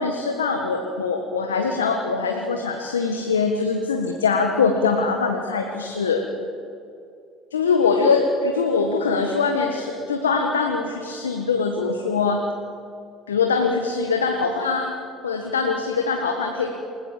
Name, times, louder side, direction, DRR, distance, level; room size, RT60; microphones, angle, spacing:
voice 1, 0.0-6.2 7.5-12.4 13.3-14.9 15.2-16.7, left 4 dB, 85° left, 3 dB, 1.6 m, -22 dB
28.0 x 16.5 x 7.5 m, 2.5 s
hypercardioid pair, 65°, 0 cm